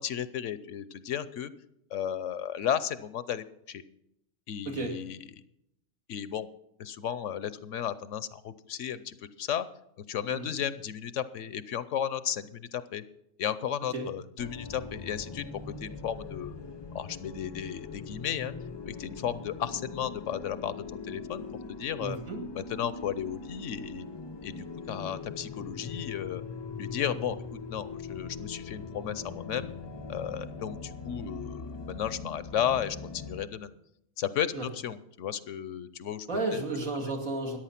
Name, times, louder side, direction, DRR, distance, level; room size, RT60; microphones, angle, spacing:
voice 1, 0.0-1.5 1.9-3.8 4.5-5.2 6.1-6.5 6.8-9.7 10.1-13.0 13.4-15.4 15.8-16.6 16.9-18.5 18.9-21.5 21.8-22.2 22.6-24.1 24.4-26.4 26.8-27.4 27.7-29.7 30.1-33.7 34.2-36.6, left 9 dB, 70° left, 15 dB, 1.0 m, -34 dB
sound 1, 14.4-33.5, left 4 dB, 45° left, 0.3 m, -41 dB
voice 2, 22.0-22.4 34.5-34.6 36.3-37.6, right 2 dB, 75° right, 1 dB, 3.0 m, -32 dB
14.0 x 10.0 x 5.8 m, 0.79 s
omnidirectional pair, 1.4 m